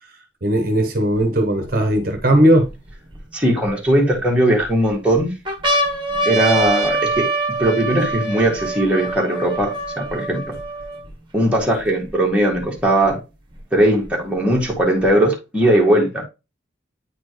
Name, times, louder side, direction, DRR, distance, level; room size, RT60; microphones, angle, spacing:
voice 1, 0.4-2.7, right 1 dB, 45° right, 0.9 m, -17 dB
sound 1, 1.1-1.2 1.9-3.2 3.9-4.6 5.1-5.2 5.5-11.1 11.8-11.9 12.1-13.1 14.0-15.0, right 2 dB, 25° right, 1.4 m, -24 dB
voice 2, 3.3-5.3 6.3-7.3 7.6-10.4 11.3-13.2 13.7-16.2, right 1 dB, 5° right, 1.8 m, -18 dB
9.2 x 4.2 x 3.1 m
head